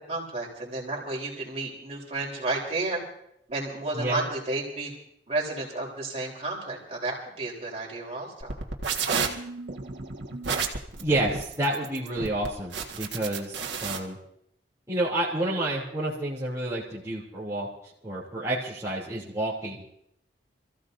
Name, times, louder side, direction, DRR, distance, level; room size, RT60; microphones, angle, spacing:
voice 1, 0.1-3.0 3.5-4.9 5.3-8.6, right 2 dB, 35° right, -3 dB, 3.8 m, -32 dB
sound 1, 8.4-14.0, right 5 dB, 75° right, 1.7 m, -31 dB
voice 2, 11.0-14.2 14.9-17.7 18.0-19.8, right 1 dB, 15° right, -9 dB, 2.9 m, -29 dB
27.5 x 15.0 x 2.7 m, 0.74 s
head